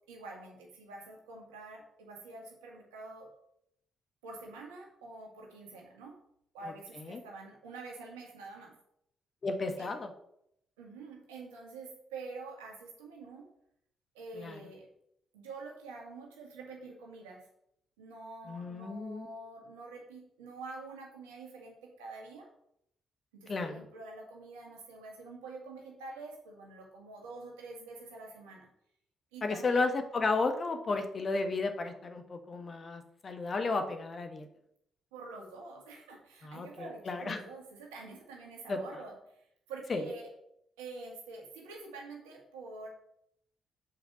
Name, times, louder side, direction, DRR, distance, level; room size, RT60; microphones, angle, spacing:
voice 1, 0.1-3.3 4.2-6.2 6.5-8.7 9.8-9.9 10.8-13.5 14.1-14.9 15.3-17.5 18.0-22.5 23.3-28.7 29.3-29.9 35.1-40.3 40.8-42.9, right 3 dB, 90° right, 0 dB, 1.9 m, -47 dB
voice 2, 9.4-10.1 14.4-14.6 18.5-19.3 23.5-23.8 29.4-34.5 36.4-37.4 38.7-38.8 39.9-40.0, left 3 dB, 45° left, 6 dB, 1.5 m, -33 dB
6.7 x 5.0 x 7.0 m, 0.75 s
hypercardioid pair, 50°, 0 cm